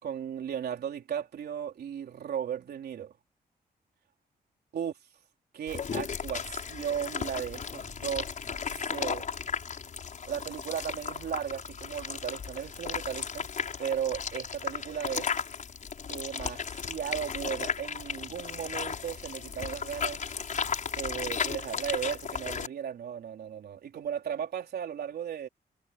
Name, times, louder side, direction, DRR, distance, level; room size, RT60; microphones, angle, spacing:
voice 1, 0.0-3.1 4.7-4.9 5.5-8.3 8.9-9.3 10.2-13.5 13.8-15.3 16.1-20.3 20.9-25.5, right 9 dB, 90° right, 3.9 m, -36 dB
sound 1, 5.7-22.7, left 6 dB, 50° left, 5.8 m, -35 dB
wide cardioid pair, 165°, 16 cm